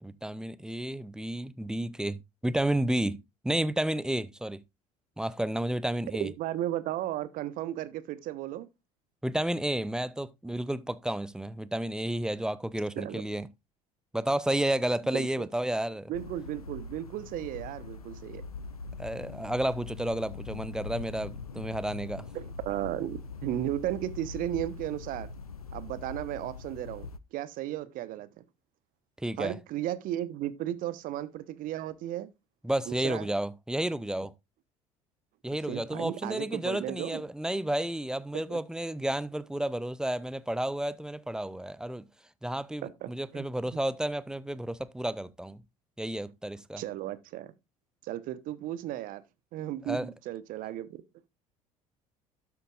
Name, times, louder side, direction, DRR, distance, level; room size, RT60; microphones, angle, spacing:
voice 1, 0.0-4.6 5.2-6.3 9.2-13.5 14.1-16.1 19.0-22.3 29.2-29.6 32.6-34.3 35.4-42.1 42.4-45.6 46.0-46.8 49.9-50.1, right 1 dB, 5° right, 0.6 m, -31 dB
voice 2, 6.2-8.7 13.0-13.2 15.1-15.5 16.1-18.4 22.3-25.3 25.7-28.4 29.4-32.3 32.9-33.3 35.7-37.2 38.3-38.6 42.8-43.5 46.8-47.5 48.0-49.2 49.5-51.0, right 13 dB, 50° right, 1.0 m, -35 dB
sound 1, 16.1-27.2, left 4 dB, 90° left, 0.5 m, -42 dB
12.0 x 8.0 x 2.4 m
figure-of-eight pair, 60°, 18 cm